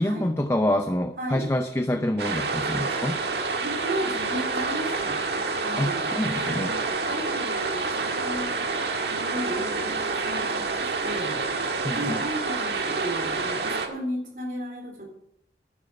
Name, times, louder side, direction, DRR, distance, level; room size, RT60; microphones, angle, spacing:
voice 1, 0.0-3.2 5.8-6.7 11.8-12.2, left 1 dB, 15° left, 7 dB, 0.5 m, -26 dB
voice 2, 1.2-1.5 3.6-5.2 5.6-8.7 9.1-11.4 11.9-15.0, right 1 dB, 50° right, 2 dB, 3.7 m, -34 dB
sound 1, 2.2-13.9, right 4 dB, 70° right, 1.6 m, -28 dB
11.0 x 10.5 x 5.7 m, 0.75 s
head